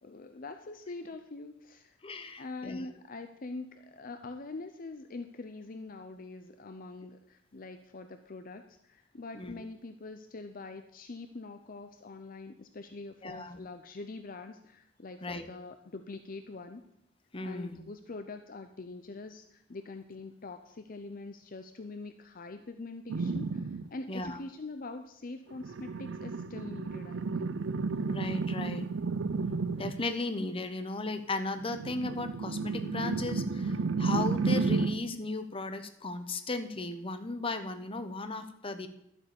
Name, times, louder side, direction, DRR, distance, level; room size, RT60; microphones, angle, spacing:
voice 1, 0.0-2.0 2.4-16.8 17.4-27.5, left 3 dB, 50° left, 8 dB, 0.7 m, -44 dB
voice 2, 2.0-2.9 9.3-9.6 13.2-13.6 15.2-15.5 17.3-17.8 24.1-24.4 28.1-28.9 29.8-38.9, left 2 dB, 30° left, 9 dB, 1.0 m, -36 dB
sound 1, 23.1-23.9 25.6-30.1 31.6-35.1, right 4 dB, 80° right, 0.5 m, -32 dB
12.0 x 8.2 x 7.0 m, 0.75 s
head